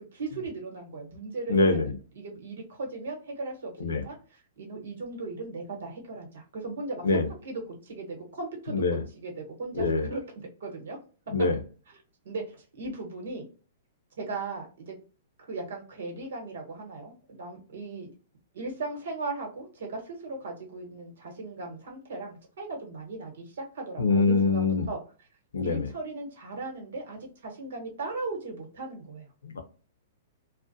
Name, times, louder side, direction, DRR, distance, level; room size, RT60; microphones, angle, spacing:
voice 1, 0.1-7.2 7.4-8.8 9.1-10.2 10.6-11.0 12.2-13.5 14.2-14.9 15.4-18.1 18.5-25.0 25.6-29.3, right 3 dB, 75° right, 1.1 m, -37 dB
voice 2, 1.5-1.9 3.8-4.0 7.0-7.3 8.7-9.0 9.7-10.1 11.3-11.6 24.0-24.9 25.5-25.9 29.4-29.6, left 3 dB, 90° left, 0.6 m, -24 dB
2.5 x 2.1 x 2.5 m
hypercardioid pair, 130°, 0 cm